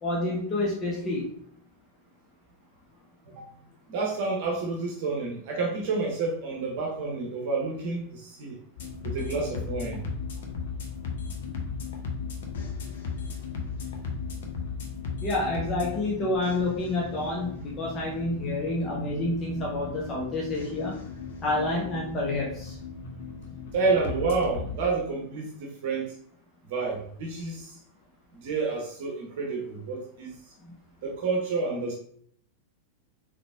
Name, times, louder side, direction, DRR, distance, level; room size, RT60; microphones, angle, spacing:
voice 1, 0.0-1.3 15.2-20.9 21.4-22.8, left 2 dB, 25° left, -4 dB, 1.0 m, -28 dB
voice 2, 3.9-8.6 9.0-10.0 23.0-23.2 23.7-26.2 26.7-27.8 28.3-30.4 31.0-31.9, right 4 dB, 50° right, 0 dB, 0.9 m, -29 dB
sound 1, 8.8-24.8, left 5 dB, 60° left, 0.8 m, -36 dB
4.0 x 3.3 x 3.4 m, 0.63 s
figure-of-eight pair, 90°, 0 cm